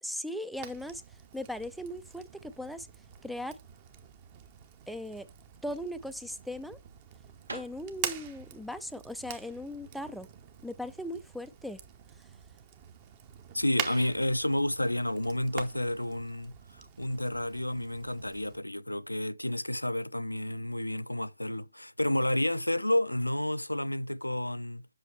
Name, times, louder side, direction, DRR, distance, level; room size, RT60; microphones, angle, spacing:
voice 1, 0.0-1.0 1.3-2.9 3.2-3.6 4.9-5.3 5.6-6.8 7.5-10.3 10.6-11.8, left 1 dB, ahead, 0.3 m, -38 dB
Fire, 0.5-18.6, right 8 dB, 25° right, 0.9 m, -45 dB
sound 1, 7.4-11.2, right 2 dB, 65° right, 1.9 m, -49 dB
voice 2, 13.5-24.9, left 1 dB, 90° left, 0.4 m, -30 dB
7.6 x 6.1 x 3.3 m
figure-of-eight pair, 145°, 0 cm